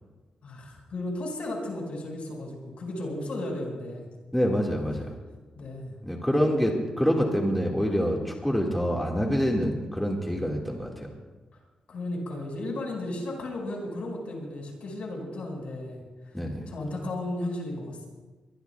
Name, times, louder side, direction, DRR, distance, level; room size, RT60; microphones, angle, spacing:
voice 1, 0.4-4.1 5.6-6.0 11.9-16.0 16.7-18.1, left 1 dB, 65° left, 0 dB, 5.4 m, -34 dB
voice 2, 4.3-5.1 6.0-11.1 16.3-16.6, equal, 5° left, -1 dB, 1.9 m, -26 dB
23.5 x 22.0 x 2.3 m, 1.3 s
wide cardioid pair, 135°, 2 cm